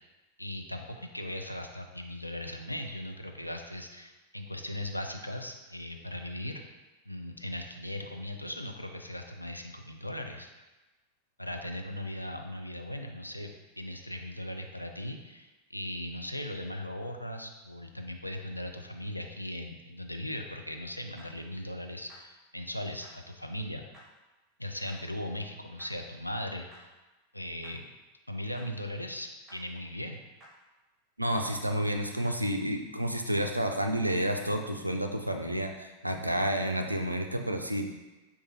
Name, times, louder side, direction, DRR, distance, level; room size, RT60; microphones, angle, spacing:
voice 1, 0.4-6.6 7.1-10.5 11.4-23.9 24.6-26.9 27.3-27.8 28.3-30.2, left 1 dB, 85° left, 4 dB, 0.3 m, -38 dB
sound 1, 21.2-21.3 22.1-22.2 23.0-23.1 23.9-24.0 24.9-25.0 25.8-25.9 26.7-26.8 27.6-27.7 28.5-28.7 29.5-29.6 30.4-30.5 31.3-31.4 32.2-32.4, right 1 dB, 25° right, 0.9 m, -53 dB
voice 2, 31.2-37.9, right 1 dB, 85° right, 5 dB, 0.3 m, -30 dB
4.7 x 2.3 x 2.8 m, 1.1 s
figure-of-eight pair, 90°, 0 cm